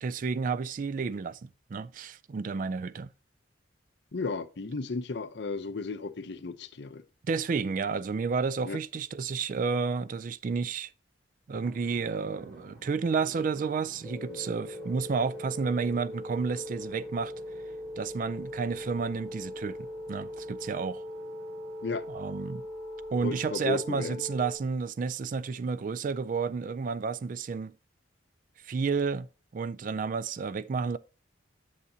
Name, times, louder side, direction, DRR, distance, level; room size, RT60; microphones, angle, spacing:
voice 1, 0.0-3.1 7.3-10.9 11.5-17.3 18.0-21.0 22.1-22.6 23.1-27.7 28.6-29.3 29.5-31.0, right 5 dB, 45° right, 0.3 m, -31 dB
voice 2, 4.1-7.0 8.7-8.8 21.8-22.1 23.2-24.2, left 3 dB, 60° left, 0.6 m, -34 dB
Drum, 11.5-22.5, right 2 dB, 85° right, 3.6 m, -53 dB
sound 1, 14.0-24.5, left 1 dB, 5° right, 1.5 m, -40 dB
8.3 x 6.7 x 2.7 m
head